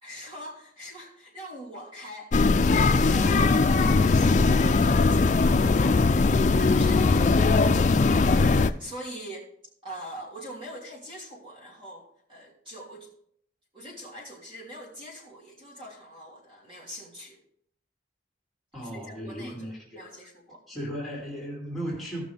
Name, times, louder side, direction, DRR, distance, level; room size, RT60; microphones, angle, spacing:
voice 1, 0.0-9.5 9.8-13.1 13.7-17.4 18.8-20.9, equal, 25° right, -3 dB, 2.7 m, -43 dB
sound 1, 2.3-8.7, left 3 dB, 40° left, 0.4 m, -20 dB
voice 2, 18.7-20.1 20.7-22.2, equal, ahead, -6 dB, 2.5 m, -36 dB
16.5 x 6.1 x 3.4 m, 0.69 s
head